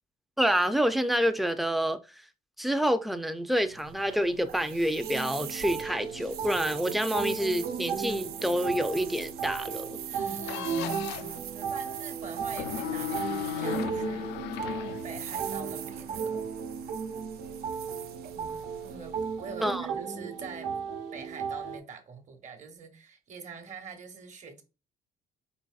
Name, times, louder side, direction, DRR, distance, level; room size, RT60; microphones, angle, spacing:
voice 1, 0.4-2.0 2.6-9.9 19.6-19.9, equal, ahead, 0.4 m, -28 dB
sound 1, 3.6-19.8, right 10 dB, 70° right, 0.5 m, -43 dB
sound 2, 5.0-21.8, right 6 dB, 85° right, 0.9 m, -35 dB
voice 2, 10.1-14.3 15.0-16.5 18.3-20.7 21.1-24.6, right 5 dB, 45° right, 1.0 m, -45 dB
sound 3, 10.5-11.4 12.5-15.6, left 11 dB, 85° left, 0.4 m, -36 dB
4.0 x 4.0 x 2.3 m
cardioid pair, 110°, 17 cm